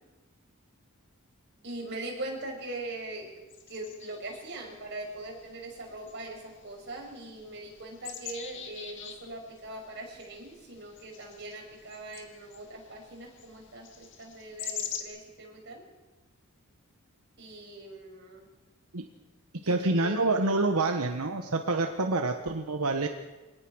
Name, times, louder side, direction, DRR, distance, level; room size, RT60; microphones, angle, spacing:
voice 1, 1.6-15.8 17.4-18.5 19.6-20.2 20.9-21.0, right 2 dB, 50° right, 1 dB, 6.0 m, -41 dB
sound 1, 3.5-15.0, left 8 dB, 55° left, 2.4 m, -45 dB
voice 2, 19.7-23.1, right 2 dB, 80° right, 5 dB, 1.3 m, -27 dB
25.5 x 18.5 x 6.4 m, 1.2 s
head